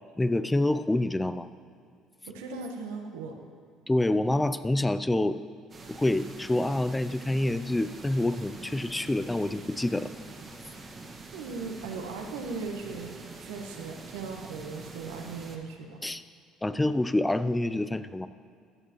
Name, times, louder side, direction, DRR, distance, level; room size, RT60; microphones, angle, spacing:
voice 1, 0.0-1.5 3.9-5.4 5.9-10.1 16.0-16.2 16.6-18.3, left 1 dB, 15° left, 13 dB, 0.6 m, -27 dB
voice 2, 2.3-3.4 11.3-16.0, right 4 dB, 80° right, 3 dB, 1.5 m, -38 dB
sound 1, 5.7-15.6, right 3 dB, 35° right, 1.9 m, -45 dB
16.0 x 12.0 x 3.1 m, 2.3 s
hypercardioid pair, 55°, 0 cm